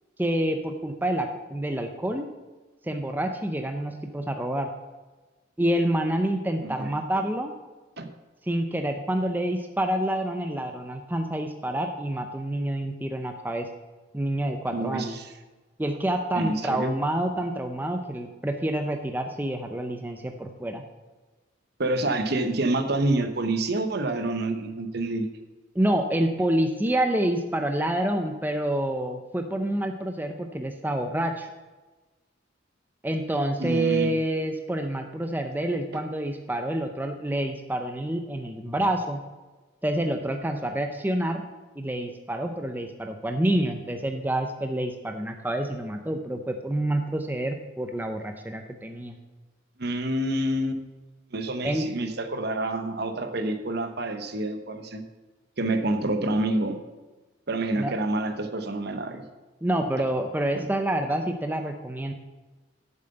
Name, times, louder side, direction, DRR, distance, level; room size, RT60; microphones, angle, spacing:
voice 1, 0.2-2.3 2.8-4.7 5.6-7.5 8.5-13.7 14.1-15.2 15.8-20.8 25.7-31.5 33.0-39.2 39.8-41.4 41.8-49.2 51.6-51.9 57.8-57.9 59.6-62.1, right 1 dB, 10° right, 5 dB, 0.6 m, -27 dB
voice 2, 6.6-7.0 8.0-8.1 14.7-15.3 16.3-16.9 21.8-25.3 33.6-34.1 49.8-50.9 51.3-55.0 55.6-56.8 57.5-59.3 60.5-60.7, right 2 dB, 55° right, 8 dB, 0.9 m, -28 dB
7.8 x 7.4 x 7.7 m, 1.2 s
head